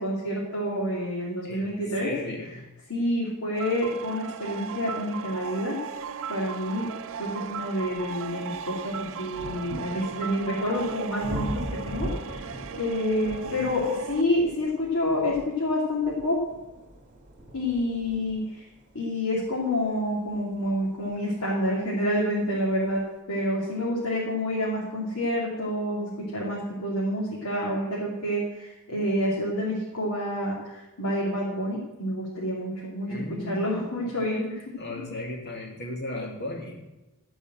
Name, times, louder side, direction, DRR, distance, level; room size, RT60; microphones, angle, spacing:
voice 1, 0.0-2.1 2.9-5.8 6.3-6.9 7.2-16.4 17.5-18.6 18.9-23.0 23.3-33.2 33.5-34.6 34.9-35.1, left 1 dB, 80° left, -6 dB, 2.9 m, -28 dB
voice 2, 1.4-2.7 13.2-13.7 33.1-34.2 34.8-36.9, left 1 dB, 50° left, 1 dB, 2.2 m, -36 dB
sound 1, 3.5-14.2, right 7 dB, 65° right, 0.6 m, -37 dB
sound 2, 7.1-21.8 22.7-22.8, equal, 35° right, 2.6 m, -41 dB
15.0 x 5.5 x 7.8 m, 1.0 s
head